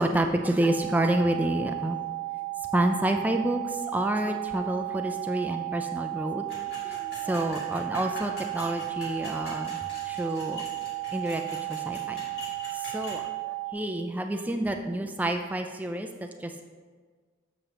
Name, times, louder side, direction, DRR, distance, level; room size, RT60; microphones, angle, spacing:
voice 1, 0.0-2.0 2.7-9.7 10.1-10.6 11.1-12.2 12.4-16.7, right 1 dB, 10° right, 5 dB, 0.3 m, -29 dB
sound 1, 0.6-13.7, right 22 dB, 65° right, 0.9 m, -34 dB
sound 2, 6.5-13.2, left 1 dB, 55° left, 2.1 m, -42 dB
7.3 x 6.5 x 3.0 m, 1.5 s
head